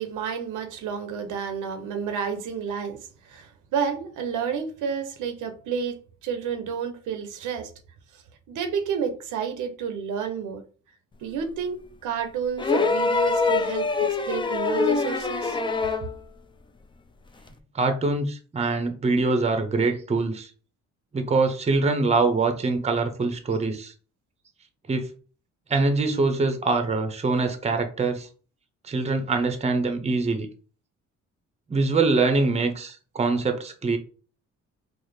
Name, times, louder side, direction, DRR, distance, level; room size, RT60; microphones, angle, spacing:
voice 1, 0.0-3.0 3.2-7.7 8.5-10.6 11.2-15.6, right 6 dB, 85° right, 0.7 m, -30 dB
sound 1, 12.6-16.1 17.5-17.6, left 4 dB, 15° left, 0.4 m, -24 dB
voice 2, 17.7-20.5 21.1-23.9 24.9-25.1 25.7-28.3 28.8-30.5 31.7-34.0, right 3 dB, 20° right, 0.6 m, -24 dB
4.0 x 2.0 x 3.2 m
cardioid pair, 90°, 30 cm